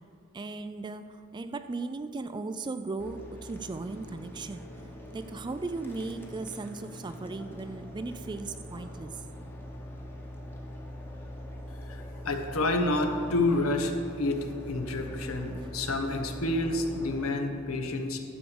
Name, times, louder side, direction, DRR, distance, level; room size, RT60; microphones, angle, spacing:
voice 1, 0.3-4.6 5.1-9.2, right 3 dB, 20° right, 10 dB, 0.3 m, -37 dB
sound 1, 3.0-17.3, left 1 dB, 10° left, 1.0 m, -43 dB
voice 2, 11.9-18.2, left 2 dB, 75° left, 5 dB, 1.0 m, -29 dB
11.5 x 5.0 x 7.0 m, 2.6 s
head